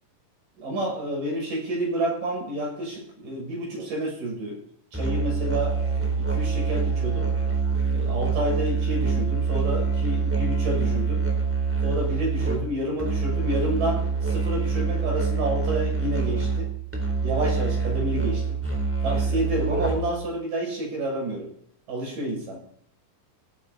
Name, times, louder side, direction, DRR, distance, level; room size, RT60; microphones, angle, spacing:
voice 1, 0.6-4.6 4.9-5.8 6.2-7.3 7.9-11.2 11.8-16.7 17.2-18.6 19.0-21.5 21.9-22.6, right 1 dB, 80° right, -1 dB, 8.3 m, -29 dB
Musical instrument, 4.9-20.3, right 5 dB, 5° right, 3.4 m, -25 dB
17.0 x 14.5 x 4.2 m, 0.65 s
omnidirectional pair, 3.8 m